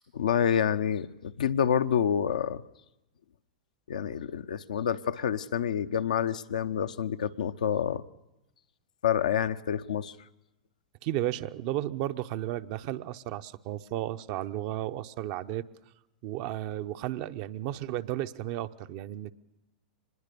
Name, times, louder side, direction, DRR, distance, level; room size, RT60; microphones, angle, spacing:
voice 1, 0.1-2.6 3.9-8.0 9.0-10.1, left 8 dB, 75° left, 9 dB, 0.8 m, -28 dB
voice 2, 11.0-15.7 16.2-19.3, right 14 dB, 50° right, 9 dB, 0.8 m, -33 dB
24.5 x 20.5 x 6.9 m, 0.93 s
hypercardioid pair, 105°, 4 cm